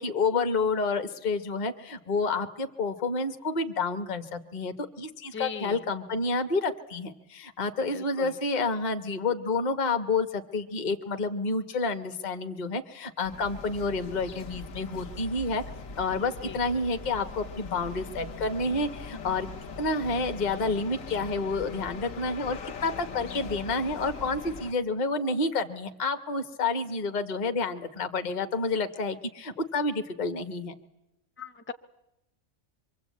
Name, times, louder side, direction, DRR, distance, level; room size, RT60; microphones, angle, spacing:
voice 1, 0.0-15.6 16.0-19.5 19.8-30.7, left 3 dB, 35° left, 7 dB, 1.1 m, -29 dB
voice 2, 5.3-5.8 7.9-8.4 16.4-16.6 31.4-31.7, left 7 dB, 10° left, 10 dB, 0.6 m, -38 dB
sound 1, 13.2-24.7, left 4 dB, 75° left, 1.5 m, -41 dB
24.0 x 24.0 x 8.4 m, 0.94 s
omnidirectional pair, 1.4 m